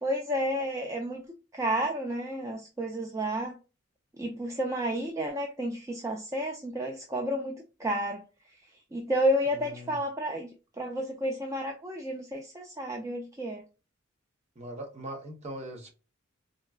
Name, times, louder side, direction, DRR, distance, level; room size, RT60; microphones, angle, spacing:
voice 1, 0.0-1.3 1.5-3.5 4.1-8.6 8.9-13.6, equal, 15° right, 0.4 m, -31 dB
voice 2, 9.5-10.0 14.6-15.9, right 1 dB, 35° right, 0.8 m, -40 dB
3.8 x 2.2 x 2.3 m
head